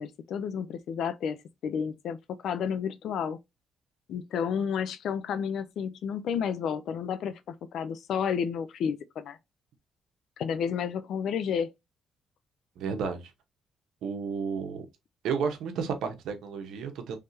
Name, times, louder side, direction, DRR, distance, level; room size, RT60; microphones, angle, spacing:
voice 1, 0.0-1.4 1.6-3.4 4.1-9.4 10.4-11.7, left 7 dB, 75° left, 0.5 m, -31 dB
voice 2, 12.8-13.2 14.0-14.9 15.2-17.2, right 6 dB, 80° right, 0.9 m, -32 dB
3.6 x 3.3 x 2.6 m
cardioid pair, 90°, 0 cm